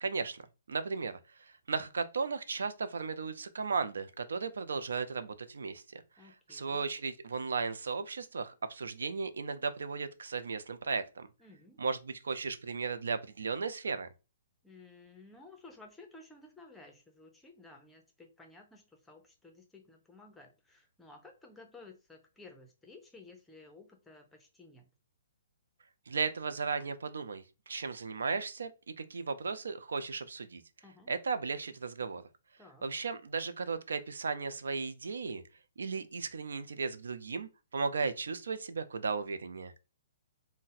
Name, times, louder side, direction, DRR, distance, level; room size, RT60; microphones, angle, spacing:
voice 1, 0.0-0.4 0.7-6.0 6.5-11.3 11.8-14.1 26.1-28.7 29.0-30.6 31.1-32.2 32.8-35.4 35.8-39.7, right 4 dB, 80° right, 0.4 m, -35 dB
voice 2, 6.2-6.8 11.4-11.8 14.6-24.9 30.8-31.1 32.6-32.9, left 3 dB, 5° left, 0.6 m, -55 dB
2.5 x 2.1 x 3.9 m
hypercardioid pair, 140°, 0 cm